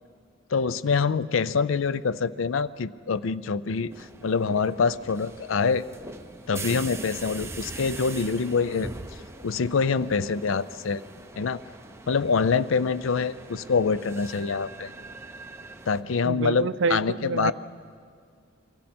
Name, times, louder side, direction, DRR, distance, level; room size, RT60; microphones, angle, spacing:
voice 1, 0.5-5.8 6.5-8.9 9.4-11.0 11.4-11.6 12.1-14.9 15.9-17.5, left 5 dB, 75° left, 17 dB, 0.5 m, -25 dB
sound 1, 3.9-16.0, right 2 dB, 15° right, 0.8 m, -42 dB
voice 2, 16.3-17.5, right 4 dB, 65° right, 13 dB, 0.5 m, -27 dB
28.5 x 23.5 x 4.3 m, 2.2 s
head